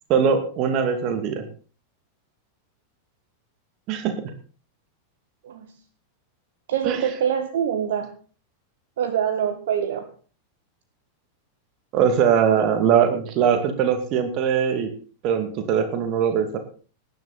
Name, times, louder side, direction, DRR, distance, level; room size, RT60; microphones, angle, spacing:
voice 1, 0.1-1.5 3.9-4.2 6.8-7.0 11.9-14.9 15.2-16.6, right 7 dB, 40° right, 7 dB, 2.4 m, -21 dB
voice 2, 6.7-8.1 9.0-10.1 12.6-12.7, right 8 dB, 60° right, 9 dB, 1.1 m, -25 dB
18.5 x 10.5 x 4.2 m, 0.39 s
figure-of-eight pair, 90°, 0 cm